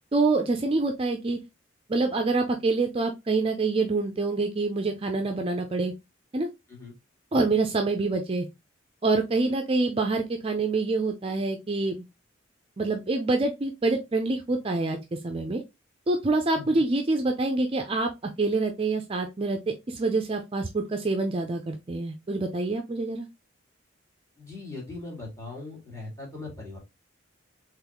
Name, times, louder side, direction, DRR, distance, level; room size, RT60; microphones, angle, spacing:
voice 1, 0.1-1.4 1.9-5.9 6.3-6.5 7.3-8.5 9.0-12.1 12.8-15.6 16.1-18.1 18.4-23.3, right 3 dB, 30° right, 4 dB, 0.4 m, -26 dB
voice 2, 24.4-26.8, left 3 dB, 15° left, -2 dB, 1.9 m, -40 dB
3.9 x 3.0 x 2.9 m, 0.23 s
head